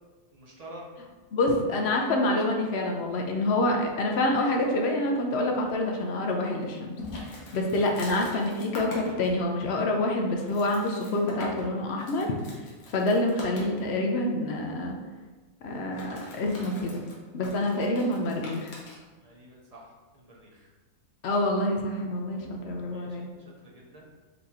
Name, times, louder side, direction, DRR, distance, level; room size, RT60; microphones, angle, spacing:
voice 1, 0.3-0.9 7.2-7.4 17.6-17.9 19.2-20.7 22.9-24.1, right 1 dB, 45° right, -3 dB, 0.5 m, -49 dB
voice 2, 1.3-7.0 7.3-12.3 12.9-15.0 15.6-17.1 17.3-18.7 21.2-23.3, left 1 dB, 65° left, 1 dB, 0.7 m, -27 dB
sound 1, 7.0-9.3 9.9-10.0 10.4-13.9 15.8-19.0, left 2 dB, 80° left, 1.4 m, -42 dB
4.0 x 2.8 x 3.6 m, 1.3 s
omnidirectional pair, 1.5 m